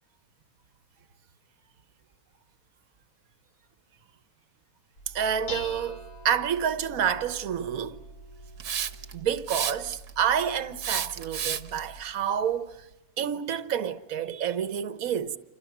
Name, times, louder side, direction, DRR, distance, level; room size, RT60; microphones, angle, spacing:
Dishes pots and pans, 5.0-12.0, equal, 80° left, 5.0 m, -44 dB
voice 1, 5.1-8.0 9.1-12.9 13.2-15.4, right 8 dB, 65° right, 1.5 m, -29 dB
Hiss, 8.6-9.1 9.5-10.1 10.8-11.8, right 8 dB, 85° right, 1.6 m, -30 dB
29.5 x 27.5 x 6.0 m
omnidirectional pair, 1.6 m